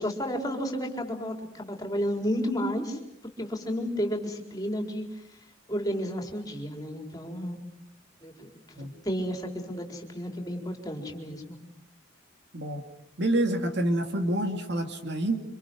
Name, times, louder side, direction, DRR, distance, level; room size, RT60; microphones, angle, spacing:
voice 1, 0.0-3.0 3.4-5.0 5.7-7.6 8.2-11.6, equal, 20° left, 3 dB, 4.5 m, -32 dB
voice 2, 13.2-15.4, right 1 dB, 60° right, 5 dB, 2.8 m, -27 dB
30.0 x 26.5 x 6.2 m, 0.73 s
head